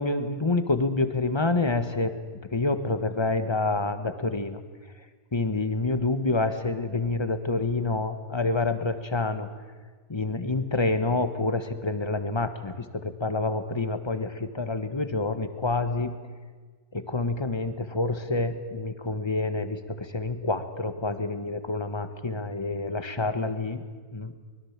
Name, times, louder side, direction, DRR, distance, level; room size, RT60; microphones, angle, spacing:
voice 1, 0.0-2.1 2.5-4.6 5.3-9.5 10.1-16.2 16.9-23.8 24.1-24.3, left 3 dB, 15° left, 9 dB, 1.3 m, -27 dB
24.5 x 21.0 x 7.4 m, 1.4 s
omnidirectional pair, 1.8 m